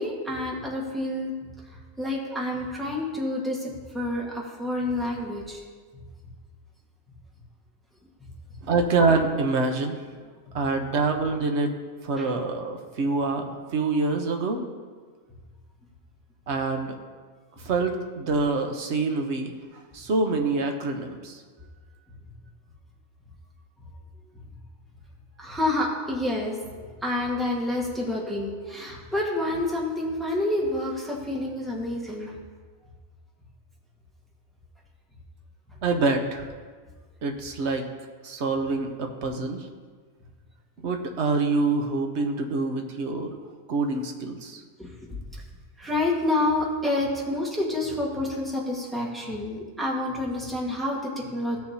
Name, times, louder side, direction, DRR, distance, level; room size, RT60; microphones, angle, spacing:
voice 1, 0.0-1.3 2.0-5.6 12.2-12.3 25.4-26.6 27.0-32.3 44.8-45.2 45.8-51.6, left 1 dB, ahead, -3 dB, 1.3 m, -28 dB
voice 2, 8.6-10.3 10.5-11.7 12.0-14.6 16.5-17.0 17.6-21.4 35.8-36.5 37.2-37.9 38.2-39.7 40.8-43.4 43.7-44.6, right 3 dB, 55° right, 4 dB, 1.1 m, -26 dB
15.5 x 6.5 x 2.8 m, 1.5 s
omnidirectional pair, 1.5 m